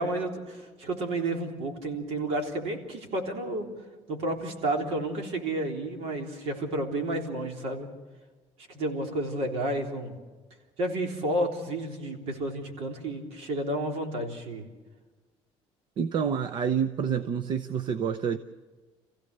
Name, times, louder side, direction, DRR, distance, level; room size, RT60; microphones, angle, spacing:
voice 1, 0.0-3.7 4.1-7.9 8.7-10.1 10.8-14.6, right 1 dB, 60° right, 3 dB, 3.6 m, -31 dB
voice 2, 16.0-18.4, right 7 dB, 45° right, 10 dB, 0.7 m, -28 dB
28.0 x 16.0 x 6.7 m, 1.3 s
cardioid pair, 175°, 11 cm